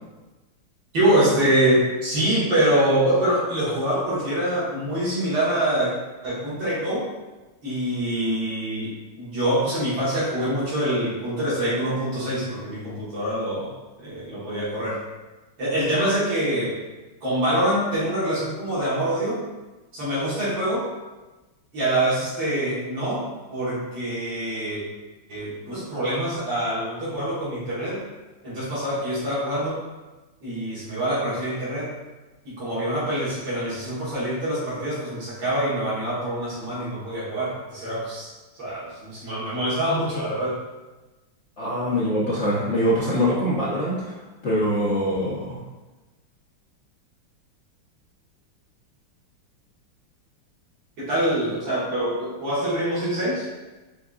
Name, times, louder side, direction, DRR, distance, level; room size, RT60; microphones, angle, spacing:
voice 1, 0.9-5.9 6.2-7.0 7.6-8.9 9.2-13.7 14.0-15.0 15.6-16.7 17.2-19.4 19.9-20.9 21.7-23.3 23.5-24.8 25.3-28.0 28.4-29.8 30.4-31.9 32.5-40.6 51.0-53.5, right 1 dB, 65° right, -9 dB, 2.1 m, -25 dB
voice 2, 41.6-44.2 44.4-45.6, equal, 85° left, -7 dB, 0.6 m, -23 dB
5.0 x 3.6 x 2.4 m, 1.2 s
omnidirectional pair, 2.3 m